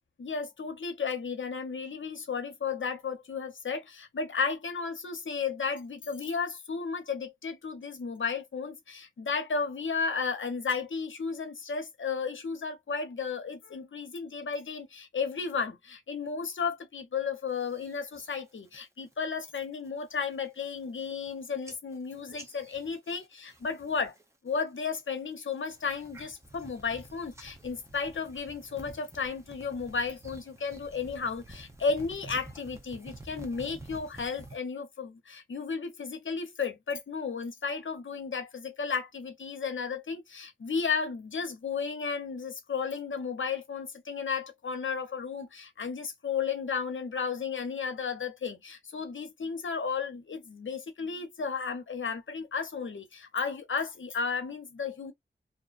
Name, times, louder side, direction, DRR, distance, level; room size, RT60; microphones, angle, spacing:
voice 1, 0.2-24.1 24.4-55.1, left 5 dB, 80° left, 0.7 m, -34 dB
sound 1, 17.5-18.3 18.7-19.1 19.5-19.9 20.3-20.4 20.6-21.3 21.6-24.2 24.5-25.0 25.5-34.6, right 2 dB, 15° right, 0.7 m, -50 dB
2.5 x 2.1 x 2.4 m
wide cardioid pair, 65°, 20 cm